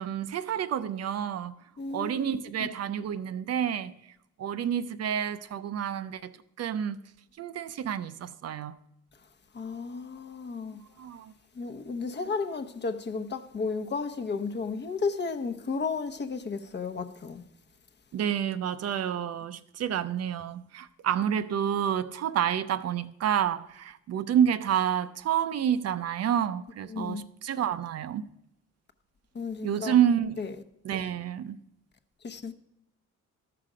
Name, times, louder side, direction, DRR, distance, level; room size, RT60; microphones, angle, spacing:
voice 1, 0.0-1.6 1.9-3.9 4.4-7.0 7.4-8.8 11.0-11.3 18.1-28.3 29.6-30.4 30.8-31.6, right 9 dB, 55° right, 0.5 m, -29 dB
voice 2, 1.8-2.7 9.5-10.8 11.5-17.4 26.9-27.2 29.3-29.9 30.4-30.5 32.2-32.5, left 4 dB, 35° left, 0.8 m, -33 dB
13.0 x 5.9 x 5.0 m
cardioid pair, 90°, 30 cm